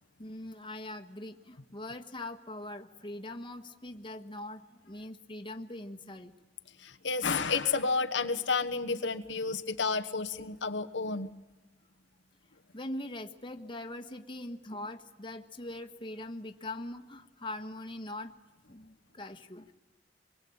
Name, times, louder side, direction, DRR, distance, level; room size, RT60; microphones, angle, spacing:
voice 1, 0.2-6.3 12.7-18.3 18.7-19.7, left 1 dB, 30° left, 6 dB, 1.5 m, -42 dB
voice 2, 6.8-11.3, left 4 dB, 85° left, 7 dB, 1.2 m, -31 dB
26.0 x 23.0 x 8.7 m, 1.0 s
head